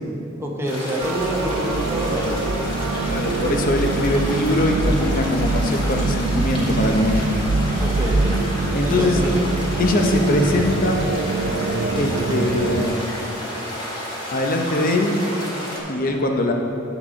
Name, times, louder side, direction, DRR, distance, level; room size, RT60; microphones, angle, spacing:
voice 1, 0.4-2.5 7.8-8.5 8.8-9.4, equal, 10° right, -2 dB, 0.7 m, -27 dB
sound 1, 0.6-15.8, equal, 25° left, 1.8 m, -31 dB
sound 2, 1.0-12.9, right 3 dB, 80° right, 0.5 m, -24 dB
voice 2, 3.0-7.4 8.7-9.2 9.8-11.0 12.0-13.2 14.3-15.2 15.9-16.5, left 1 dB, 45° left, 3 dB, 0.7 m, -21 dB
8.9 x 7.1 x 3.6 m, 2.9 s
head